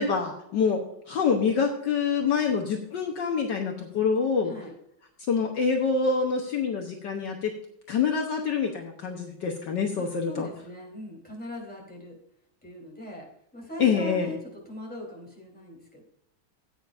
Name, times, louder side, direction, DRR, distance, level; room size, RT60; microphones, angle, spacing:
voice 1, 0.0-4.5 5.3-7.5 7.9-10.5 13.8-14.3, left 5 dB, 65° left, 2 dB, 1.6 m, -26 dB
voice 2, 10.0-12.2 12.6-13.3 13.5-16.0, left 1 dB, 5° left, -2 dB, 3.5 m, -40 dB
16.0 x 8.9 x 2.6 m, 0.74 s
omnidirectional pair, 2.2 m